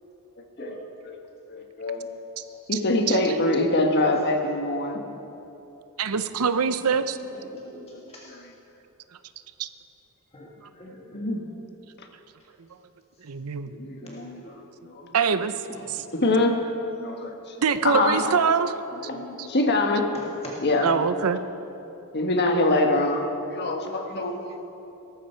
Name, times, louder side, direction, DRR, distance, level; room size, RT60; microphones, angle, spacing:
voice 1, 1.5-2.2 2.7-5.0 7.9-8.0 8.3-8.4 11.1-11.4 13.7-14.5 14.9-15.0 16.1-16.6 17.0-17.3 17.8-18.2 19.1-20.0 20.6-20.9 22.1-24.6, left 2 dB, 50° left, 3 dB, 1.4 m, -24 dB
voice 2, 6.0-7.1 9.6-9.7 13.2-13.8 15.0-15.5 15.9-16.0 17.6-18.7 19.4-19.5 20.8-21.4, right 6 dB, 80° right, 11 dB, 0.7 m, -24 dB
voice 3, 7.6-8.3 10.3-11.2 13.6-14.5 15.7-15.9 18.1-18.3 19.1-19.5 20.1-20.6 20.9-21.0, left 1 dB, 30° left, -4 dB, 1.6 m, -42 dB
18.0 x 14.0 x 4.5 m, 3.0 s
head